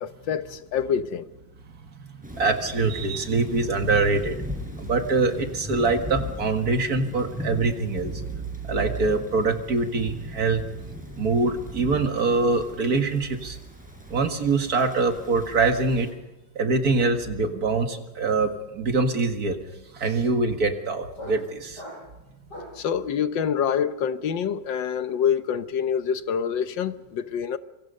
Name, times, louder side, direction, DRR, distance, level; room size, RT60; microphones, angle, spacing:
voice 1, 0.0-1.3 22.8-27.6, left 8 dB, 80° left, 1.7 m, -26 dB
Thunder / Rain, 2.2-16.1, left 1 dB, 5° right, 7.0 m, -38 dB
voice 2, 2.3-4.4 4.8-8.2 8.6-10.7 11.2-13.6 14.1-16.1 16.6-19.6 19.9-21.8, right 3 dB, 55° right, 2.2 m, -24 dB
sound 1, 16.4-16.5 16.7-22.9, left 1 dB, 65° left, 8.0 m, -45 dB
26.0 x 24.5 x 5.4 m
omnidirectional pair, 2.0 m